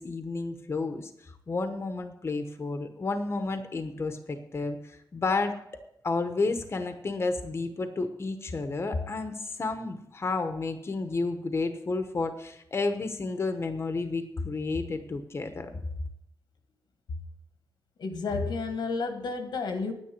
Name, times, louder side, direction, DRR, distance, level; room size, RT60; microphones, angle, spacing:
voice 1, 0.0-5.5 6.0-15.7, left 3 dB, 35° left, 8 dB, 1.1 m, -31 dB
voice 2, 18.0-19.9, left 4 dB, 90° left, 6 dB, 1.7 m, -31 dB
9.7 x 9.0 x 7.6 m, 0.77 s
wide cardioid pair, 130°, 7 cm